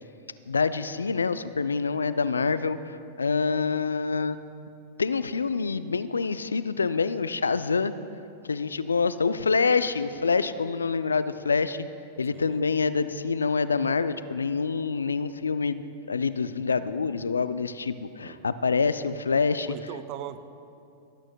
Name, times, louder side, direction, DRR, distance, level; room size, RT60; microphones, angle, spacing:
voice 1, 0.5-4.4 5.0-7.9 8.4-11.9 12.2-19.8, left 5 dB, 90° left, 14 dB, 0.3 m, -26 dB
voice 2, 12.3-12.6 18.2-18.5 19.7-20.4, right 12 dB, 45° right, 12 dB, 0.5 m, -39 dB
17.5 x 8.9 x 2.2 m, 2.6 s
hypercardioid pair, 100°, 0 cm